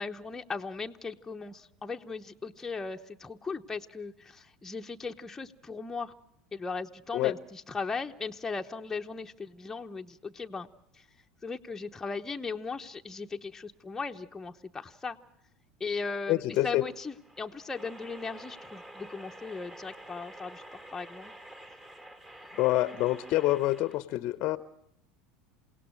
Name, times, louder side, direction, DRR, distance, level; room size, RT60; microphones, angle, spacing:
voice 1, 0.0-6.1 6.5-10.7 10.9-11.1 11.4-15.2 15.8-21.3, left 4 dB, 15° left, 3 dB, 0.9 m, -38 dB
voice 2, 16.3-16.8 22.6-24.6, left 16 dB, 55° left, 15 dB, 0.7 m, -27 dB
sound 1, 16.6-24.0, right 1 dB, 20° right, 2.5 m, -49 dB
28.0 x 17.5 x 6.3 m, 0.74 s
hypercardioid pair, 80°, 3 cm